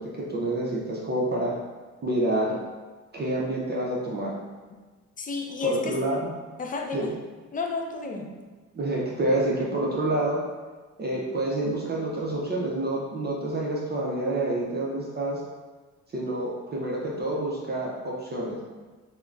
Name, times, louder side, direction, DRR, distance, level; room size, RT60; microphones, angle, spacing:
voice 1, 0.0-1.5 2.0-2.6 3.1-4.3 5.6-6.3 6.9-7.1 8.2-8.3 8.7-10.4 11.0-15.4 16.1-18.6, right 1 dB, 35° right, -4 dB, 0.6 m, -28 dB
voice 2, 5.2-6.0 6.6-7.1 7.5-8.3, left 3 dB, 30° left, 2 dB, 0.4 m, -30 dB
3.6 x 2.1 x 2.3 m, 1.4 s
cardioid pair, 90°, 30 cm